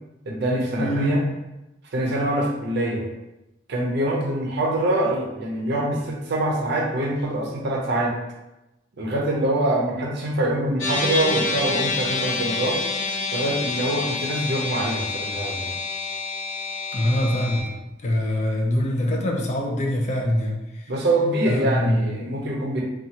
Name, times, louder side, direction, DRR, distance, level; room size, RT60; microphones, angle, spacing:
voice 1, 0.3-1.2 1.9-3.0 3.7-8.1 9.0-12.8 13.3-15.7 17.3-17.5 20.9-22.8, right 1 dB, 60° right, -2 dB, 0.6 m, -24 dB
voice 2, 0.8-1.2 16.9-17.7 18.0-20.9 21.5-22.0, left 1 dB, 35° left, 0 dB, 0.4 m, -24 dB
sound 1, 10.8-17.6, left 3 dB, 85° left, 0.6 m, -27 dB
2.7 x 2.3 x 2.8 m, 0.97 s
head